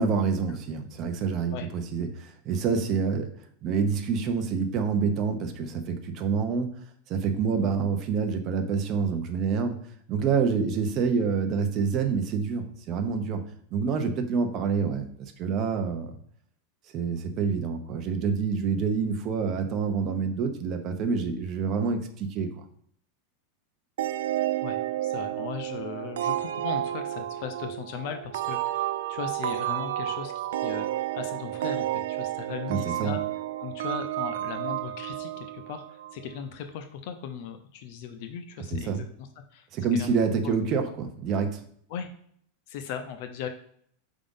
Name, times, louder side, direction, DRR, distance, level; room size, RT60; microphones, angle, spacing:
voice 1, 0.0-3.3 3.6-6.8 7.1-9.8 10.1-16.2 16.9-22.6 32.7-33.1 38.7-39.0 39.7-41.6, right 5 dB, 30° right, 5 dB, 0.8 m, -27 dB
sound 1, 24.0-36.4, right 13 dB, 80° right, 0.4 m, -31 dB
voice 2, 24.6-33.2 33.6-40.2 40.4-40.5 41.9-42.1 42.7-43.5, left 7 dB, 50° left, 7 dB, 0.6 m, -38 dB
4.9 x 3.7 x 5.4 m, 0.63 s
supercardioid pair, 165°, 0 cm